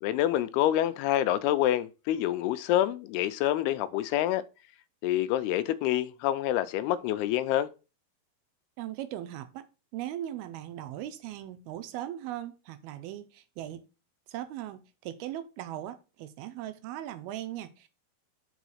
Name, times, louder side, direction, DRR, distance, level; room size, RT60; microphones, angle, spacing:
voice 1, 0.0-4.4 5.0-7.7, left 13 dB, 85° left, 2.5 m, -27 dB
voice 2, 8.8-9.7 9.9-13.8 14.3-17.9, right 12 dB, 80° right, 2.5 m, -39 dB
5.5 x 5.0 x 6.3 m
omnidirectional pair, 4.6 m